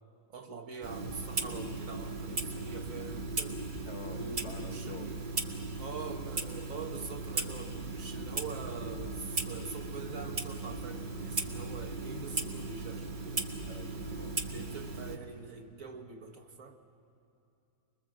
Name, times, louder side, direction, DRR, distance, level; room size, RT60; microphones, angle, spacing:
voice 1, 0.3-3.6 4.2-5.2 5.8-13.4 14.5-16.8, right 5 dB, 55° right, 4 dB, 1.3 m, -44 dB
Clock, 0.8-15.2, right 3 dB, 30° right, 1.3 m, -37 dB
voice 2, 3.9-5.1 13.6-14.4, left 2 dB, 45° left, 3 dB, 1.5 m, -47 dB
25.0 x 21.5 x 7.5 m, 2.7 s
omnidirectional pair, 1.8 m